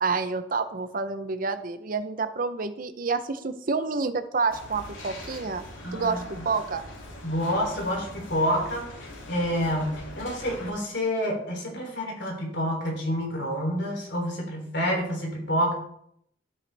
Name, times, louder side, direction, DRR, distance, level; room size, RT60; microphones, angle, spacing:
voice 1, 0.0-5.6 5.9-6.8, right 4 dB, 45° right, 10 dB, 0.7 m, -28 dB
sound 1, 4.5-10.7, left 1 dB, 90° left, 2.6 m, -42 dB
voice 2, 5.8-6.5 7.2-8.9 9.3-15.7, equal, 60° left, 0 dB, 3.3 m, -28 dB
12.5 x 8.2 x 3.4 m, 0.72 s
head